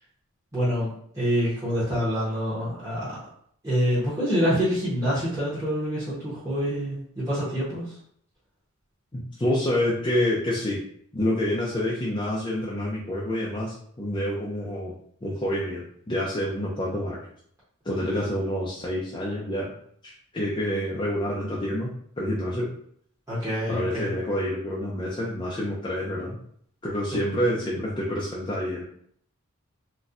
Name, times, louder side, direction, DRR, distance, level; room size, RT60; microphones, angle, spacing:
voice 1, 0.5-3.2 3.6-8.0 23.3-24.1, equal, 15° right, -11 dB, 0.9 m, -26 dB
voice 2, 9.1-10.8 11.1-14.9 15.2-17.2 17.8-19.7 20.0-22.7 23.7-26.4 26.8-28.8, left 1 dB, 20° left, -5 dB, 0.4 m, -28 dB
4.0 x 2.2 x 2.5 m, 0.64 s
head